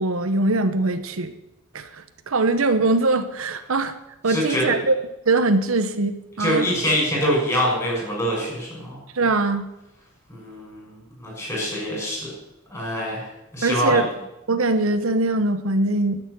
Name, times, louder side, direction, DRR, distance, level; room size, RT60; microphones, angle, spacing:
voice 1, 0.0-1.3 1.7-1.9 2.3-3.9 4.2-4.9 5.2-6.7 9.1-9.6 13.6-14.1 14.5-16.2, right 2 dB, 90° right, 9 dB, 1.0 m, -21 dB
voice 2, 4.3-4.7 6.4-9.0 10.3-12.3 12.7-13.3 13.5-14.0, equal, 15° left, -3 dB, 6.5 m, -24 dB
11.5 x 7.0 x 9.6 m, 0.91 s
head